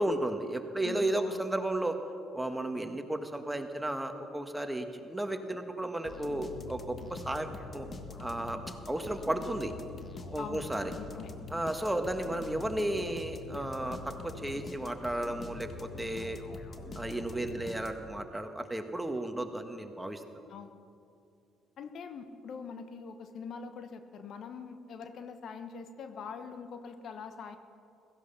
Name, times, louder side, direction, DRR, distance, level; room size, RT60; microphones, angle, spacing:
voice 1, 0.0-2.0 2.3-7.5 7.7-7.9 8.2-8.6 8.9-9.7 10.3-10.9 11.5-16.4 16.9-20.2, right 1 dB, 10° right, 6 dB, 1.6 m, -33 dB
voice 2, 0.8-1.4 10.4-11.3 20.5-20.8 21.8-27.6, left 5 dB, 60° left, 8 dB, 1.1 m, -44 dB
sound 1, 6.0-18.3, left 3 dB, 40° left, 1.6 m, -44 dB
16.5 x 15.0 x 5.8 m, 2.5 s
hypercardioid pair, 55°, 0 cm